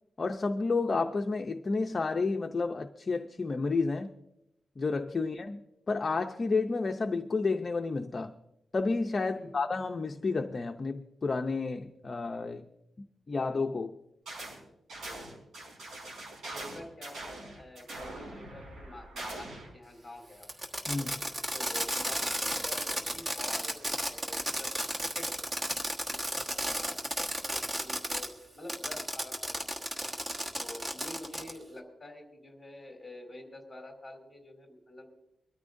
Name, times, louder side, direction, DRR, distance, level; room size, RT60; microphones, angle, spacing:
voice 1, 0.2-4.1 4.8-5.6 5.9-8.3 8.7-12.6 13.3-14.0 20.9-21.2, left 4 dB, 30° left, 4 dB, 0.6 m, -31 dB
sound 1, 14.3-14.6 14.9-19.7, right 2 dB, 85° right, 5.1 m, -43 dB
voice 2, 15.0-15.4 16.5-20.5 21.2-24.7 25.1-25.6 26.0-27.0 27.4-29.5 30.6-35.1, left 1 dB, 5° left, 0 dB, 3.5 m, -48 dB
Fireworks, 20.4-28.3 28.7-31.6, equal, 20° right, 1.4 m, -33 dB
23.5 x 13.5 x 2.6 m, 0.85 s
wide cardioid pair, 165°, 0 cm